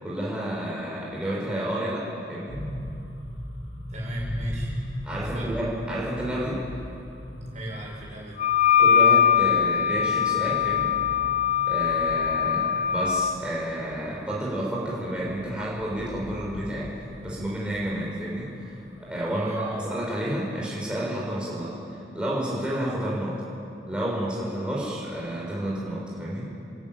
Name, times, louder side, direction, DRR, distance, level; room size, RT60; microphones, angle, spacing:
voice 1, 0.0-2.5 5.0-6.6 8.8-11.0 11.7-16.9 17.2-23.4 23.9-26.5, right 1 dB, 5° right, -6 dB, 5.3 m, -30 dB
sound 1, 2.5-20.4, equal, 60° left, 3.0 m, -39 dB
voice 2, 3.9-4.8 5.2-5.5 7.5-8.8 19.3-19.8, right 1 dB, 40° right, -3 dB, 7.2 m, -38 dB
Wind instrument woodwind instrument, 8.4-13.4, left 8 dB, 40° left, 0.5 m, -22 dB
28.0 x 15.5 x 9.1 m, 2.7 s
head